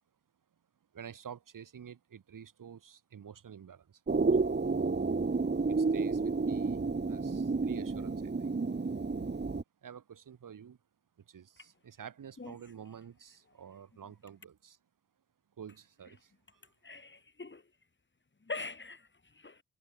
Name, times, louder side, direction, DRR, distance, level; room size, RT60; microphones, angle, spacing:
voice 1, 0.9-4.0 4.4-4.7 5.7-8.5 9.8-10.8 11.2-14.8 15.6-16.6, right 8 dB, 85° right, 5.7 m, -49 dB
sound 1, 4.1-9.6, right 4 dB, 35° right, 1.8 m, -30 dB
voice 2, 16.8-17.6 18.4-19.6, left 3 dB, 35° left, 5.0 m, -43 dB
cardioid pair, 65°, 31 cm